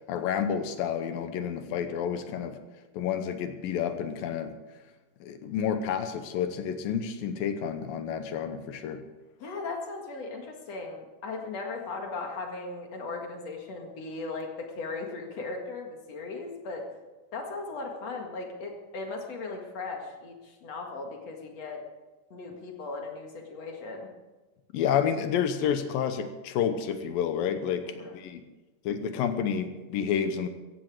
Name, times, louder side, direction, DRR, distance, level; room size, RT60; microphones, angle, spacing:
voice 1, 0.1-2.6 2.9-4.6 5.2-9.0 24.7-28.4 28.9-30.5, left 8 dB, 80° left, 9 dB, 2.6 m, -30 dB
voice 2, 9.4-16.8 17.3-21.8 22.3-24.1 28.0-28.2, left 3 dB, 50° left, 2 dB, 2.6 m, -37 dB
16.0 x 15.0 x 4.8 m, 1.2 s
omnidirectional pair, 4.2 m